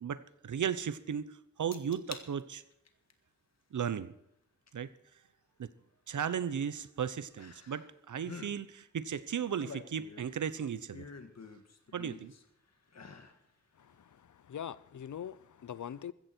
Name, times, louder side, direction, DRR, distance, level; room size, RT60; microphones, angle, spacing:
voice 1, 0.0-2.6 3.7-4.1 4.7-4.9 5.6-5.7 6.1-11.0 11.9-12.3, right 8 dB, 90° right, 0.9 m, -36 dB
sound 1, 1.7-2.3 2.7-3.1 4.7-4.8 7.4-7.9 8.2-8.5 9.3-10.4 10.9-12.4 12.9-13.4 13.8-13.9, left 5 dB, 60° left, 1.7 m, -48 dB
voice 2, 13.8-16.1, left 9 dB, 80° left, 0.7 m, -43 dB
15.0 x 14.5 x 4.5 m
wide cardioid pair, 70°, 29 cm